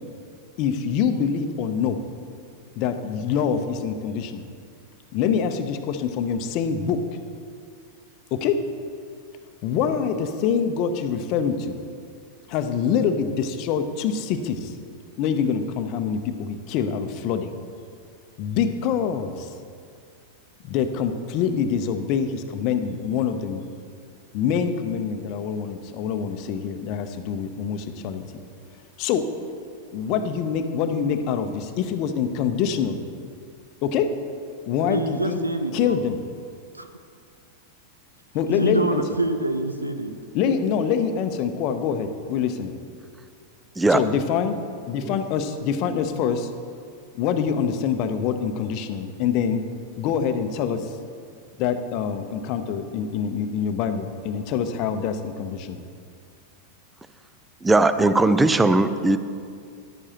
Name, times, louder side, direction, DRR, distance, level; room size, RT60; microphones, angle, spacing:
voice 1, 0.6-2.0 2.8-4.5 5.1-7.0 8.3-8.6 9.6-11.8 12.5-14.8 15.2-17.5 18.4-19.5 20.6-23.6 24.3-28.2 29.0-29.3 29.9-33.0 33.8-34.1 34.7-35.4 35.7-36.2 38.3-39.0 40.3-42.7 43.9-44.6 44.9-46.5 47.1-49.6 50.0-50.9 51.6-55.8, left 7 dB, 40° left, 8 dB, 0.7 m, -25 dB
voice 2, 34.9-36.0 36.7-36.9 38.5-40.1, right 2 dB, 85° right, 8 dB, 0.7 m, -26 dB
voice 3, 57.6-59.2, right 2 dB, 10° right, 12 dB, 0.5 m, -18 dB
14.5 x 11.0 x 2.9 m, 2.3 s
figure-of-eight pair, 90°, 0 cm